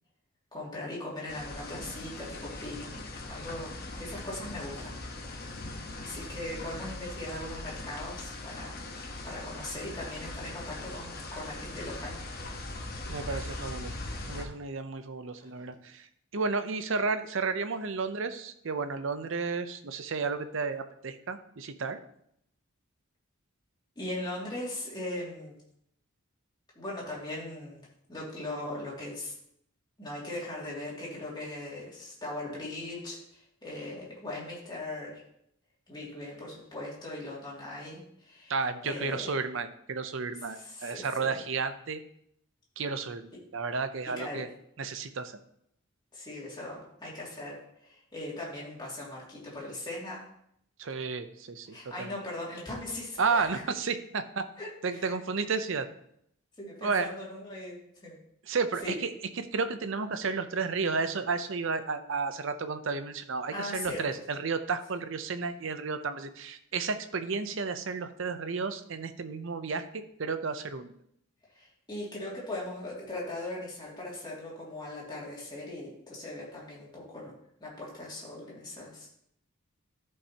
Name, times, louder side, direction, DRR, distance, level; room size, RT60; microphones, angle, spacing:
voice 1, 0.5-4.9 6.0-12.2 15.4-15.7 24.0-25.5 26.8-27.8 28.1-29.3 30.0-35.1 35.9-38.5 38.8-39.3 40.5-41.4 44.0-44.4 46.1-47.5 47.8-50.2 51.7-53.5 54.6-55.1 56.6-57.8 58.0-58.1 58.8-58.9 63.5-64.0 71.5-77.3 77.6-79.1, left 1 dB, 20° left, -5 dB, 2.4 m, -39 dB
sound 1, 1.3-14.4, left 2 dB, 45° left, 1.1 m, -40 dB
voice 2, 13.1-14.0 14.3-16.1 16.3-22.0 38.5-42.0 42.8-44.5 44.8-45.4 50.8-52.2 53.2-54.5 54.8-55.9 56.8-57.1 58.5-59.1 59.4-70.9, right 4 dB, 60° right, 10 dB, 0.6 m, -32 dB
13.0 x 5.5 x 2.9 m, 0.73 s
head